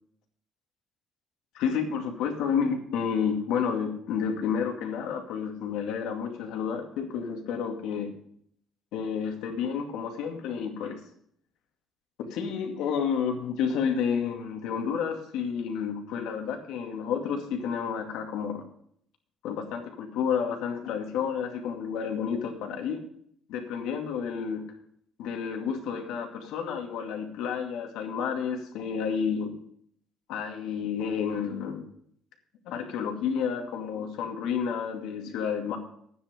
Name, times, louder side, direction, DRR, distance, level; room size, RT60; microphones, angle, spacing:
voice 1, 1.5-8.1 8.9-11.0 12.2-18.6 19.4-23.0 23.5-24.6 25.2-29.5 30.3-31.8 32.7-35.8, left 7 dB, 85° left, 3 dB, 2.4 m, -30 dB
11.0 x 9.5 x 5.1 m, 0.64 s
cardioid pair, 170°, 0 cm